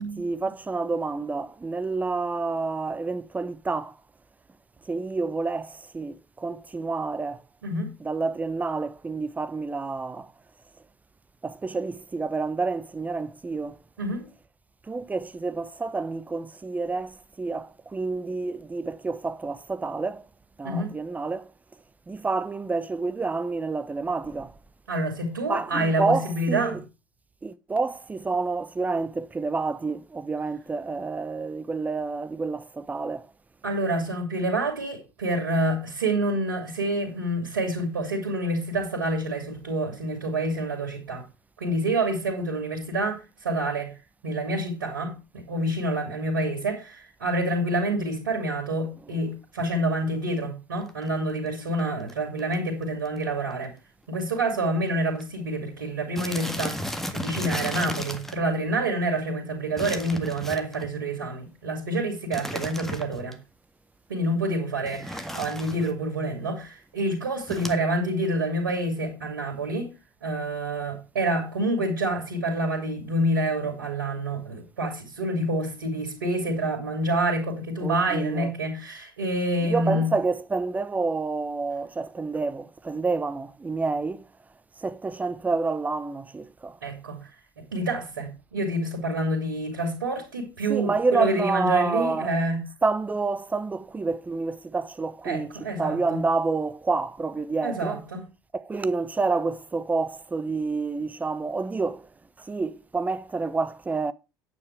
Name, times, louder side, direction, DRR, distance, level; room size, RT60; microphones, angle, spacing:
voice 1, 0.2-3.9 4.9-7.4 8.0-10.3 11.4-13.8 14.9-20.2 20.6-21.5 22.1-24.5 25.5-26.8 27.4-33.3 77.8-78.5 79.6-84.3 84.8-86.8 90.7-92.3 92.8-95.5 95.8-98.0 98.5-102.1 102.4-104.1, right 3 dB, 15° right, 0.8 m, -28 dB
voice 2, 24.9-26.8 33.6-41.2 41.6-43.9 44.2-53.7 54.1-63.4 64.1-69.9 70.2-80.1 86.8-87.2 87.6-92.6 95.2-96.3 97.6-98.2, right 1 dB, 75° right, 3.1 m, -27 dB
sound 1, 50.8-51.1 51.8-51.9 52.1-52.2 52.4-52.7 53.1-53.2 53.5-53.6 54.4-54.5 54.7-54.9 55.2-55.3 56.2-58.4 59.8-60.9 62.3-63.3 64.9-65.9 67.5-67.8, equal, 5° left, 1.7 m, -34 dB
9.8 x 8.6 x 4.7 m
figure-of-eight pair, 70°, 11 cm